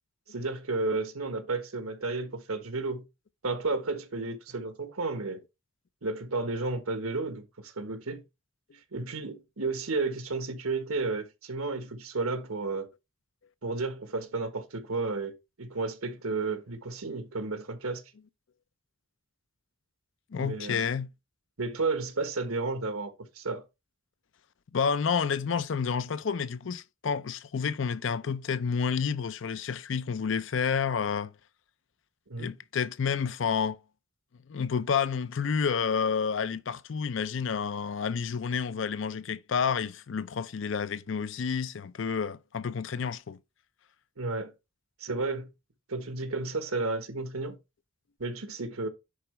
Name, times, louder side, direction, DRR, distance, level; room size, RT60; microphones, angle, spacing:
voice 1, 0.3-3.0 3.4-5.4 6.0-8.2 8.9-12.9 13.6-18.0 20.4-20.8 21.6-23.6 32.3-32.5 44.2-44.5 45.0-45.5 45.9-47.6 48.2-48.9, right 3 dB, 90° right, 1.4 m, -32 dB
voice 2, 20.3-21.1 24.7-31.3 32.4-33.8 34.5-43.4, left 6 dB, 60° left, 0.5 m, -30 dB
10.5 x 3.9 x 3.3 m
head